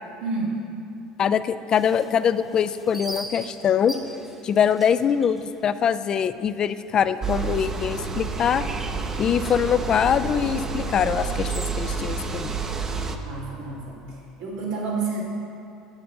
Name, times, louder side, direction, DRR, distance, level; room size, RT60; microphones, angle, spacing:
voice 1, 0.2-0.6 13.2-15.2, right 3 dB, 80° right, -6 dB, 2.6 m, -30 dB
voice 2, 1.2-3.9 4.4-8.6 9.2-12.6, left 8 dB, 40° left, 13 dB, 0.4 m, -23 dB
sound 1, 1.7-6.6 6.9-7.0 7.5-7.8 8.2-12.2, right 1 dB, 10° right, 1.0 m, -42 dB
sound 2, 7.2-13.2, right 5 dB, 25° right, 0.7 m, -29 dB
10.0 x 6.7 x 5.5 m, 2.6 s
supercardioid pair, 105°, 2 cm